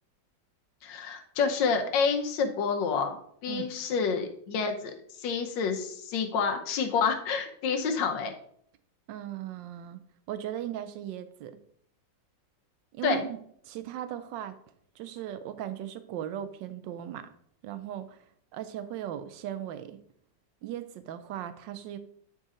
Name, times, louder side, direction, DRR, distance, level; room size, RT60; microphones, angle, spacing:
voice 1, 0.8-8.3 13.0-13.2, left 5 dB, 80° left, 5 dB, 1.6 m, -28 dB
voice 2, 9.1-10.0 10.3-11.5 12.9-13.4 13.6-14.6 15.0-17.3 17.6-18.2 18.5-20.0 20.6-22.0, right 10 dB, 80° right, 11 dB, 1.3 m, -37 dB
8.9 x 4.2 x 3.7 m, 0.65 s
omnidirectional pair, 2.0 m